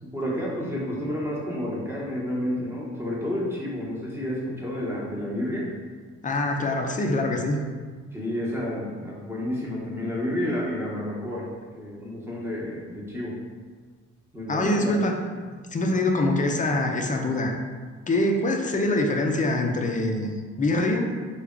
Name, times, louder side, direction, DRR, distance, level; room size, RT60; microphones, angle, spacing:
voice 1, 0.0-5.7 8.1-11.5 11.7-13.4 14.3-15.0 15.8-16.0, left 1 dB, 10° right, -5 dB, 0.9 m, -30 dB
voice 2, 6.2-7.6 14.5-15.2 15.4-17.5 18.1-21.1, left 1 dB, 25° left, 2 dB, 0.4 m, -24 dB
3.3 x 2.3 x 3.6 m, 1.5 s
cardioid pair, 90°, 30 cm